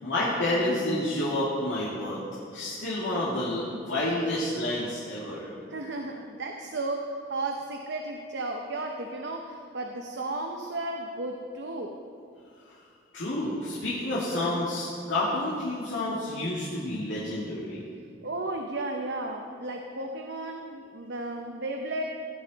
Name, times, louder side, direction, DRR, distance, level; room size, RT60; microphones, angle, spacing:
voice 1, 0.0-2.2 2.5-5.5 13.1-17.8, left 1 dB, 80° left, -8 dB, 2.2 m, -29 dB
voice 2, 5.7-11.9 18.2-22.0, right 2 dB, 65° right, 2 dB, 0.8 m, -34 dB
16.0 x 9.7 x 4.1 m, 2.3 s
head